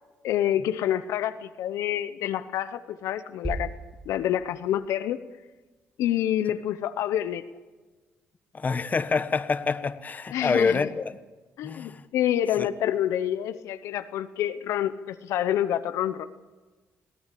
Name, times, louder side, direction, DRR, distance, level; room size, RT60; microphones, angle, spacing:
voice 1, 0.2-3.7 4.1-5.2 6.0-7.4 10.3-10.9 11.6-16.3, left 11 dB, 85° left, 0.9 m, -27 dB
sound 1, 3.4-5.3, right 2 dB, 10° right, 1.7 m, -37 dB
voice 2, 8.5-11.2 11.6-12.0 12.6-12.7, left 4 dB, 35° left, 1.3 m, -26 dB
22.5 x 16.0 x 8.4 m
cardioid pair, 80°, 5 cm